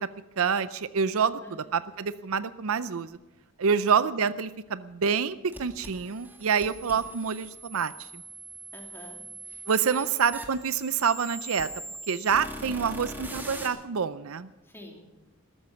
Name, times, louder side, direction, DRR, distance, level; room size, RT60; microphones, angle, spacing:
voice 1, 0.4-3.2 3.6-8.2 9.7-11.7 12.1-14.5, right 6 dB, 70° right, 15 dB, 0.5 m, -27 dB
voice 2, 1.1-1.6 3.7-3.8 8.7-10.1 12.6-12.8 14.6-15.0, left 1 dB, 10° left, 1 dB, 2.8 m, -48 dB
sound 1, 5.5-13.7, right 1 dB, 10° right, 1.8 m, -41 dB
13.5 x 13.0 x 7.2 m, 1.0 s
head